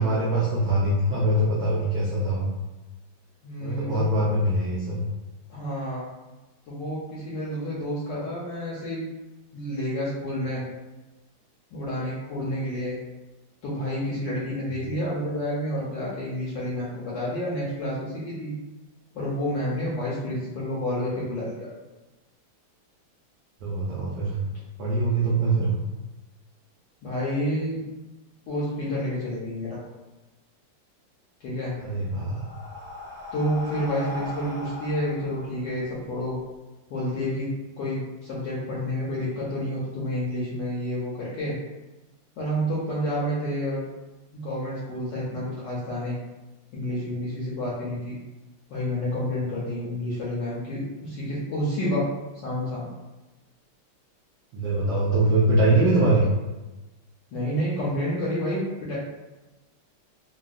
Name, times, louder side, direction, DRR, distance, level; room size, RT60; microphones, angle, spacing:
voice 1, 0.0-2.4 3.6-5.0 23.6-24.4 24.8-25.8 31.8-32.5 54.5-56.3, right 2 dB, 80° right, -6 dB, 0.9 m, -23 dB
voice 2, 3.4-4.2 5.5-6.0 6.7-9.0 9.5-10.6 11.7-13.0 13.6-18.5 19.1-21.7 27.0-27.8 28.5-29.8 31.4-31.8 33.3-36.4 36.9-37.5 37.8-41.5 42.4-43.8 44.3-46.2 46.7-48.2 48.7-52.1 52.4-52.9 57.3-59.0, equal, 70° left, -7 dB, 1.1 m, -29 dB
Breathing, 31.9-36.4, left 2 dB, 45° right, 1.1 m, -39 dB
3.5 x 2.2 x 2.4 m, 1.1 s
omnidirectional pair, 2.4 m